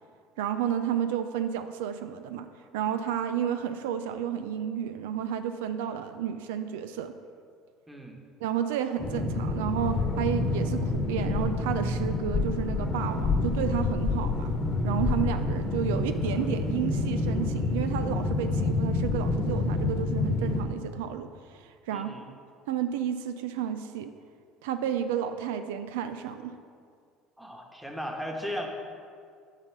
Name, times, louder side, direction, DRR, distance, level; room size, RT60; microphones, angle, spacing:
voice 1, 0.4-2.5 2.7-7.1 8.4-14.6 14.8-22.4 22.7-24.1 24.6-26.6, right 9 dB, 85° right, 9 dB, 0.3 m, -31 dB
voice 2, 7.9-8.2 21.9-22.3 27.4-28.7, equal, 5° right, 1 dB, 1.3 m, -36 dB
sound 1, 9.0-20.6, left 3 dB, 40° left, 1.1 m, -28 dB
8.0 x 4.1 x 6.5 m, 2.2 s
supercardioid pair, 80°, 0 cm